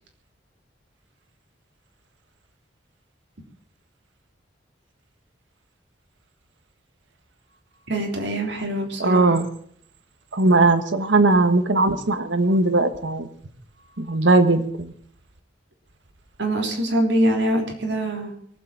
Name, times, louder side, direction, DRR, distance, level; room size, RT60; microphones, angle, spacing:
voice 1, 7.9-9.4 16.4-18.3, right 1 dB, 70° right, 2 dB, 3.5 m, -24 dB
voice 2, 9.0-9.5 10.3-13.3 14.0-14.9, right 2 dB, 90° right, 10 dB, 1.5 m, -19 dB
23.0 x 7.8 x 7.3 m, 0.63 s
head